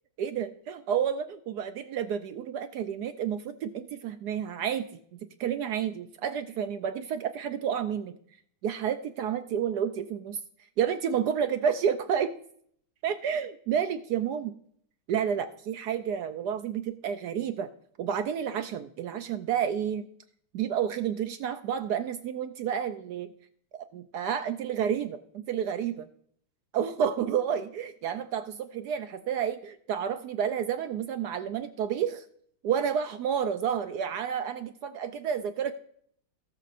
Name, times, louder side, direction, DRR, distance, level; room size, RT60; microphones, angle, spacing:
voice 1, 0.2-4.9 5.4-8.2 8.6-10.4 10.8-12.3 13.0-14.5 15.1-17.7 18.0-20.1 20.5-23.3 23.7-26.1 26.7-32.2 32.6-35.7, right 8 dB, 75° right, 9 dB, 0.9 m, -30 dB
18.5 x 6.7 x 2.5 m, 0.62 s
omnidirectional pair, 2.3 m